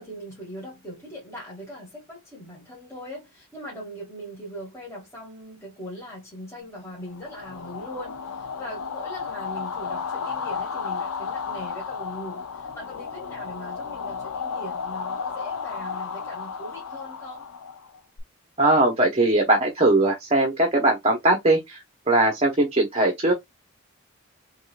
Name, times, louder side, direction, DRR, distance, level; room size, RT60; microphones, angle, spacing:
voice 1, 0.0-17.4, equal, 15° left, 1.7 m, -40 dB
sound 1, 7.1-18.2, left 6 dB, 85° left, 0.6 m, -33 dB
voice 2, 18.6-21.8 22.1-23.3, right 2 dB, 30° right, 0.7 m, -20 dB
3.6 x 3.2 x 2.2 m
head